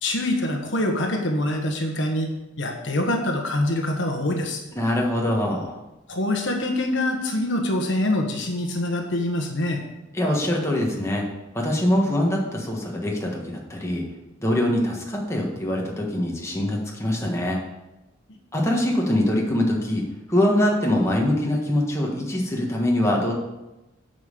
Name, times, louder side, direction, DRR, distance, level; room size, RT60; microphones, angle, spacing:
voice 1, 0.0-2.3 2.6-4.6 6.1-9.8, left 1 dB, 60° left, 2 dB, 1.3 m, -25 dB
voice 2, 4.7-5.8 10.1-11.2 11.5-14.0 14.4-17.6 18.5-20.0 20.3-23.3, left 1 dB, 15° left, -2 dB, 1.5 m, -23 dB
9.0 x 5.5 x 6.8 m, 1.0 s
head